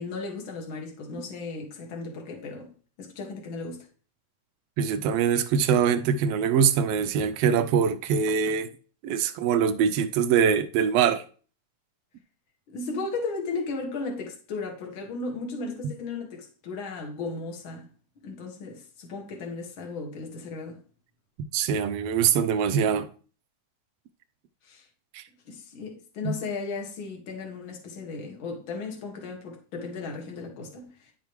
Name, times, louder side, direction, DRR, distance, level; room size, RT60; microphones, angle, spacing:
voice 1, 0.0-2.7 3.0-3.9 12.7-17.9 18.2-20.8 24.6-24.9 25.5-31.1, left 3 dB, 45° left, 2.3 m, -35 dB
voice 2, 4.8-8.7 9.0-11.2 21.5-23.1 25.1-25.2 26.2-26.3, right 7 dB, 90° right, 1.4 m, -23 dB
11.0 x 6.8 x 3.1 m
omnidirectional pair, 3.6 m